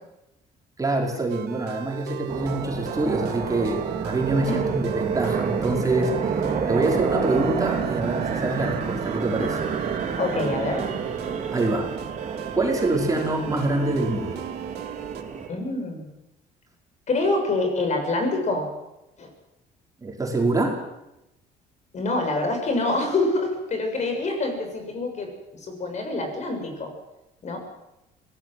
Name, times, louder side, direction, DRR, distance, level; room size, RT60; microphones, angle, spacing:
voice 1, 0.8-9.6 11.5-11.9 12.5-14.5 20.0-20.8, right 2 dB, 20° right, 0 dB, 5.1 m, -25 dB
sound 1, 1.3-15.2, right 9 dB, 80° right, 2.0 m, -37 dB
sound 2, 2.3-15.5, right 6 dB, 45° right, 4.9 m, -29 dB
voice 2, 10.2-10.8 15.5-16.1 17.1-18.7 19.2-19.3 21.9-25.3 25.7-26.9 27.4-27.6, left 2 dB, 45° left, 4 dB, 6.9 m, -26 dB
24.0 x 18.0 x 7.9 m, 0.90 s
cardioid pair, 110°, 17 cm